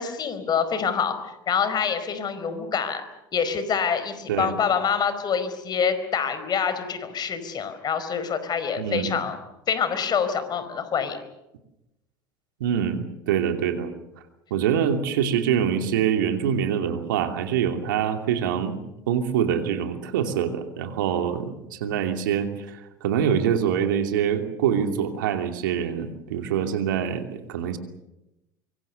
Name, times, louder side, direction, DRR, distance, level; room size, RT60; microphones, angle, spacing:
voice 1, 0.0-3.0 3.3-9.4 9.7-11.2, left 7 dB, 40° left, 11 dB, 4.7 m, -26 dB
voice 2, 8.8-9.2 12.6-13.9 14.5-18.8 19.1-27.8, right 8 dB, 80° right, 6 dB, 2.9 m, -25 dB
25.0 x 24.0 x 6.8 m, 0.92 s
hypercardioid pair, 75°, 11 cm